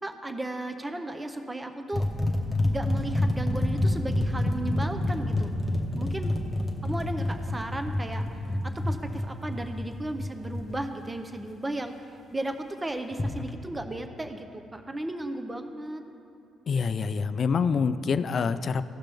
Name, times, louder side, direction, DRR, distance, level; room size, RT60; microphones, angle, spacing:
voice 1, 0.0-2.1 2.6-5.5 5.9-6.3 6.8-8.2 8.6-11.9 12.3-16.0, right 1 dB, 15° right, 6 dB, 0.6 m, -35 dB
sound 1, 1.9-10.8 13.1-13.5, left 1 dB, 30° left, 1.0 m, -28 dB
voice 2, 16.7-18.9, left 5 dB, 50° left, 12 dB, 0.3 m, -26 dB
15.5 x 5.9 x 3.4 m, 2.6 s
cardioid pair, 90°, 0 cm